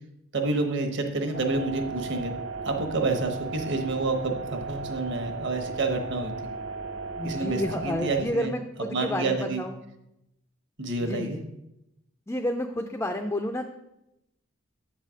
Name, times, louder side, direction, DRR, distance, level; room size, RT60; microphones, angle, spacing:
voice 1, 0.3-2.3 2.6-6.5 7.2-8.5 8.9-9.6 10.8-11.4, right 3 dB, 55° right, 4 dB, 1.0 m, -28 dB
sound 1, 1.3-8.2, right 4 dB, 80° right, 0.9 m, -36 dB
voice 2, 7.2-9.8 11.0-11.5 12.3-13.7, left 1 dB, 10° left, 5 dB, 0.3 m, -30 dB
7.9 x 4.1 x 6.2 m, 0.87 s
head